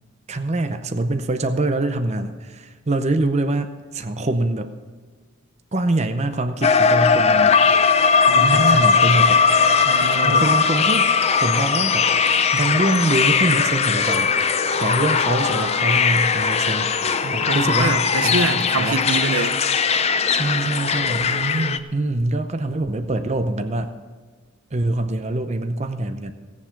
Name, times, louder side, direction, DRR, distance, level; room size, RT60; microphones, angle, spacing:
voice 1, 0.3-4.7 5.7-7.6 8.4-9.4 10.0-12.1 12.5-14.3 14.8-16.9 17.3-19.0 20.3-21.3 21.9-23.9 24.7-26.3, right 2 dB, 30° right, 8 dB, 0.6 m, -24 dB
sound 1, 6.6-21.8, left 6 dB, 30° left, 0.5 m, -19 dB
sound 2, 8.1-17.8, left 4 dB, 60° left, 2.6 m, -33 dB
voice 2, 8.3-8.9 9.8-10.5 17.2-19.6 21.2-21.9, right 3 dB, 85° right, 9 dB, 0.9 m, -25 dB
17.0 x 7.3 x 5.8 m, 1.5 s
head